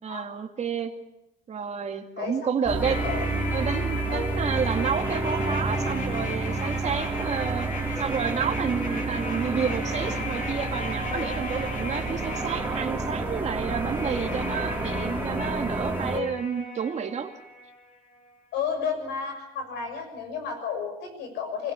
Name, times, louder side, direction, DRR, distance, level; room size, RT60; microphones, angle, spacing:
voice 1, 0.0-0.9 1.5-3.0 3.5-7.7 8.0-17.4, right 7 dB, 40° right, 5 dB, 2.5 m, -30 dB
voice 2, 2.2-3.2 4.1-4.3 11.1-11.3 16.1-16.3 18.5-21.7, left 6 dB, 85° left, 6 dB, 6.7 m, -32 dB
sound 1, 2.7-16.2, right 3 dB, 10° right, 3.5 m, -30 dB
sound 2, 2.8-17.8 18.1-18.2, left 2 dB, 50° left, 6.4 m, -36 dB
25.5 x 16.5 x 8.4 m, 0.91 s
cardioid pair, 110°, 17 cm